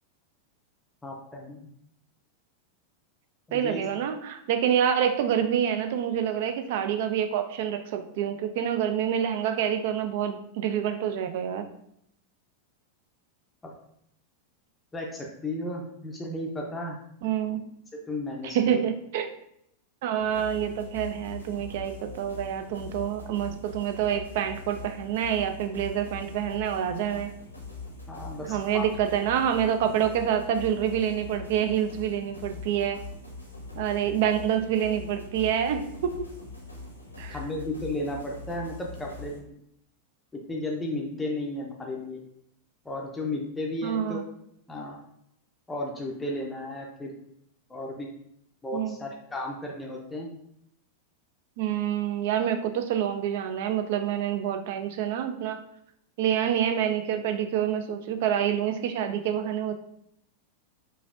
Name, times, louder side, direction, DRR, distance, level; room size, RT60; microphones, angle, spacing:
voice 1, 1.0-1.7 3.5-3.8 13.6-13.7 14.9-17.0 17.9-18.9 28.1-28.9 37.3-39.5 40.5-42.2 42.8-44.2 44.7-45.0 45.7-47.2 47.7-48.1 48.6-50.3, left 1 dB, 10° left, -1 dB, 0.5 m, -34 dB
voice 2, 3.5-11.7 17.2-17.6 18.4-19.3 20.0-27.3 28.4-33.0 33.8-36.3 37.2-37.4 43.8-44.2 48.7-49.0 51.6-55.6 56.2-59.7, right 9 dB, 50° right, 8 dB, 0.4 m, -27 dB
sound 1, 20.2-39.4, left 3 dB, 85° left, 0.8 m, -42 dB
4.9 x 2.6 x 2.5 m, 0.74 s
figure-of-eight pair, 90°, 0 cm